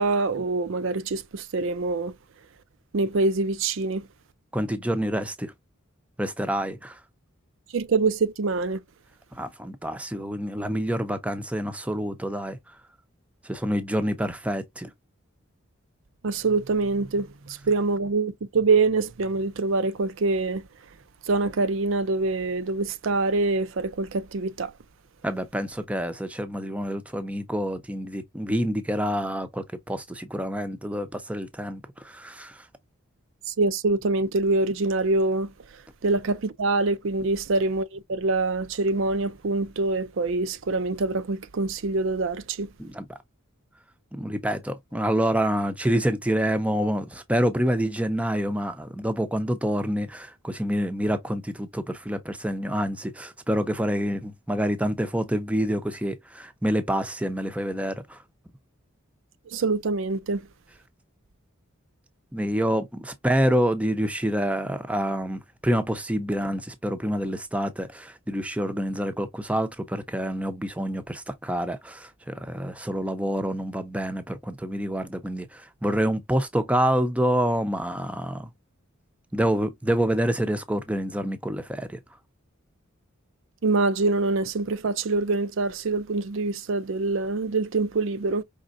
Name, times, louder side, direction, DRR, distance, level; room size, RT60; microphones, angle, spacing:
voice 1, 0.0-2.1 2.9-4.1 7.7-8.8 16.2-20.6 21.3-24.7 33.5-35.5 36.0-42.7 59.5-60.4 83.6-88.4, right 3 dB, 65° right, 0.5 m, -25 dB
voice 2, 4.5-5.5 6.2-7.0 9.3-12.8 13.4-14.9 25.2-32.7 42.8-43.2 44.1-58.2 62.3-78.5 79.3-82.0, equal, 5° right, 0.6 m, -27 dB
5.3 x 3.6 x 2.5 m
head